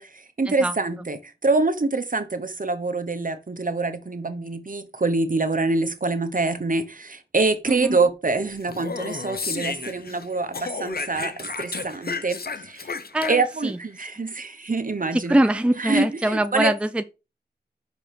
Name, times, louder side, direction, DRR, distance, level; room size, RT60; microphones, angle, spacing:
voice 1, 0.0-12.9 13.3-15.4 15.8-16.7, right 3 dB, 50° right, 1.0 m, -25 dB
Speech, 8.6-10.3 10.5-13.7, left 4 dB, 60° left, 0.7 m, -32 dB
voice 2, 13.1-13.8 15.1-17.0, right 1 dB, 5° right, 0.5 m, -23 dB
6.2 x 4.9 x 4.4 m
cardioid pair, 45°, 18 cm